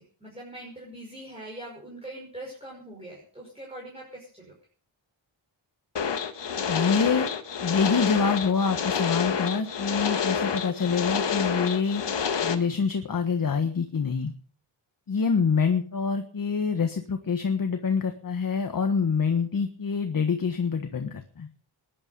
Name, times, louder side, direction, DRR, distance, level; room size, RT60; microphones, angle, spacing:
voice 1, 0.0-4.5, right 1 dB, 10° right, -3 dB, 5.5 m, -42 dB
sound 1, 6.0-12.5, left 6 dB, 60° left, 1.7 m, -28 dB
voice 2, 6.7-7.3 7.6-12.0 12.4-14.3 15.1-21.5, left 5 dB, 45° left, 7 dB, 1.4 m, -26 dB
20.0 x 11.5 x 5.4 m, 0.43 s
wide cardioid pair, 175°, 49 cm